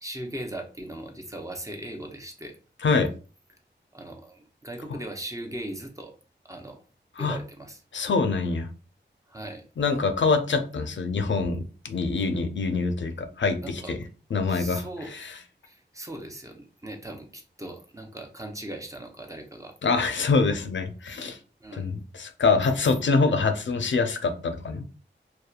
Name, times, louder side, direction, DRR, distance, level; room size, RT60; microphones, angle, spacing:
voice 1, 0.0-2.6 3.9-6.1 6.4-6.8 7.2-7.8 9.3-9.6 13.6-13.9 14.5-15.1 15.6-19.8 21.3-21.9, right 1 dB, 15° right, 4 dB, 0.5 m, -39 dB
voice 2, 7.9-8.7 9.8-14.0 14.3-15.4 19.8-21.4 21.7-24.8, left 4 dB, 80° left, 7 dB, 0.4 m, -25 dB
2.7 x 2.2 x 2.3 m, 0.36 s
wide cardioid pair, 55°, 19 cm